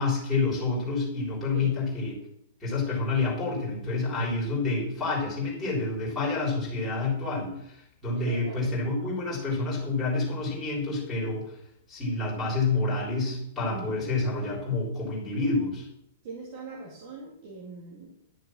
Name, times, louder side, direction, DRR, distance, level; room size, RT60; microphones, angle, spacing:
voice 1, 0.0-2.1 2.6-11.4 11.9-15.9, left 3 dB, 5° left, -7 dB, 3.6 m, -28 dB
voice 2, 8.1-8.8 13.6-14.0 16.2-18.1, right 3 dB, 35° right, -2 dB, 2.3 m, -41 dB
11.0 x 6.7 x 6.3 m, 0.76 s
hypercardioid pair, 180°, 0 cm